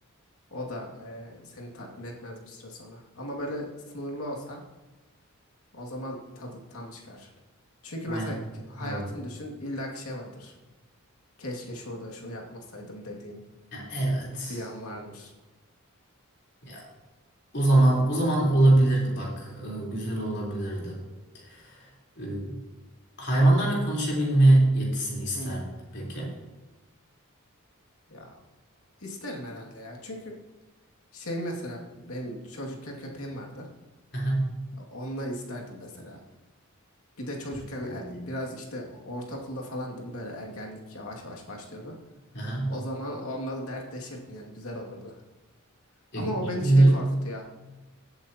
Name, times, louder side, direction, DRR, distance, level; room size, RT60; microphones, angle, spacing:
voice 1, 0.5-3.7 3.9-4.6 5.7-7.3 7.8-10.5 11.4-13.4 14.5-15.3 25.3-25.8 28.1-28.4 29.0-30.4 31.1-33.7 34.8-36.2 37.2-42.0 42.7-45.2 46.1-47.5, equal, 85° left, 0 dB, 2.2 m, -37 dB
voice 2, 8.1-8.4 8.8-9.1 13.7-14.6 16.6-16.9 17.5-21.0 21.5-21.9 22.2-22.6 23.2-25.6 25.9-26.3 34.1-34.5 37.8-38.2 42.3-42.7 46.1-47.0, right 1 dB, 55° left, -4 dB, 3.7 m, -23 dB
16.0 x 8.2 x 2.9 m, 1.2 s
head